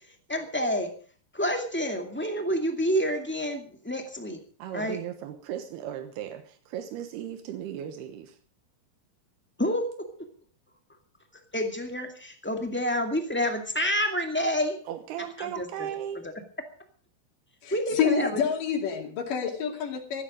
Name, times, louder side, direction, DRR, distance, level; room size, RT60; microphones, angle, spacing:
voice 1, 0.3-0.9 1.3-4.4 4.7-5.0 9.6-10.1 11.5-14.8 15.4-15.9 17.7-18.3, equal, 5° left, 4 dB, 0.9 m, -28 dB
voice 2, 4.6-8.4 14.9-16.2, right 10 dB, 85° right, 8 dB, 3.2 m, -36 dB
voice 3, 17.6-20.2, left 7 dB, 60° left, 4 dB, 3.9 m, -28 dB
16.0 x 14.5 x 5.1 m, 0.40 s
omnidirectional pair, 4.5 m